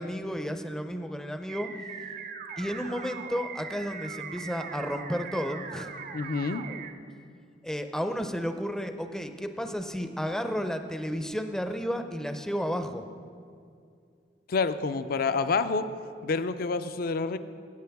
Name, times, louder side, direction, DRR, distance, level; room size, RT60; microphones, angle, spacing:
voice 1, 0.0-1.7 2.6-5.9 7.6-13.1, equal, 5° left, 7 dB, 0.5 m, -32 dB
sound 1, 1.5-6.9, right 6 dB, 45° right, 0.6 m, -40 dB
voice 2, 6.1-6.7 14.5-15.9 16.2-17.4, left 4 dB, 55° left, 12 dB, 0.4 m, -28 dB
16.0 x 8.4 x 3.5 m, 2.3 s
head